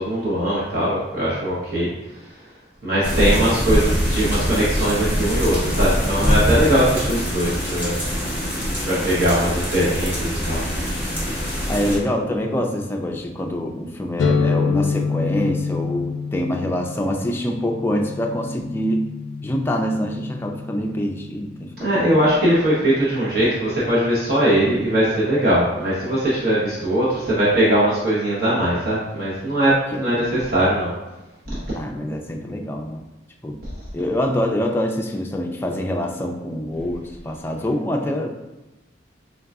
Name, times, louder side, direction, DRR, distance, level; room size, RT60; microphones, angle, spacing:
voice 1, 0.0-1.9 2.8-8.0 8.9-10.6 21.8-30.9 31.5-31.6 33.6-33.7, right 1 dB, 55° right, -8 dB, 1.0 m, -20 dB
sound 1, 3.0-12.0, equal, 10° right, 1.1 m, -23 dB
voice 2, 11.7-19.1 19.4-22.1 29.9-30.0 31.8-33.0 33.4-33.6 33.9-38.3, left 1 dB, 10° left, 2 dB, 0.3 m, -25 dB
sound 2, 14.2-21.8, left 5 dB, 90° left, 0.3 m, -27 dB
3.8 x 3.7 x 2.3 m, 1.0 s
head